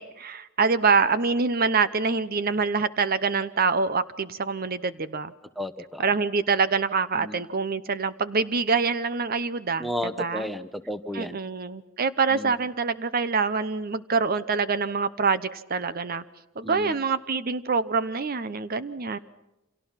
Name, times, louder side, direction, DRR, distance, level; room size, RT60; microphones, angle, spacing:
voice 1, 0.0-5.3 6.0-10.5 11.1-16.2 16.6-19.2, right 4 dB, 45° right, 14 dB, 0.8 m, -25 dB
voice 2, 5.6-6.0 7.2-7.4 9.8-11.4 12.3-12.5 16.6-16.9, left 1 dB, ahead, 9 dB, 1.0 m, -33 dB
29.5 x 27.0 x 5.8 m, 0.91 s
head